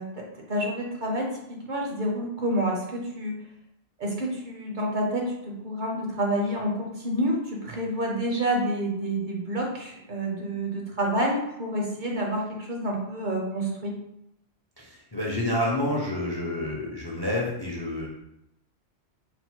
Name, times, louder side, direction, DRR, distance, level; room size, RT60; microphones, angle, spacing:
voice 1, 0.0-3.4 4.0-14.0, right 1 dB, 50° right, -1 dB, 0.8 m, -28 dB
voice 2, 14.8-18.1, left 1 dB, 30° left, -3 dB, 0.5 m, -29 dB
4.2 x 2.0 x 4.4 m, 0.81 s
omnidirectional pair, 1.1 m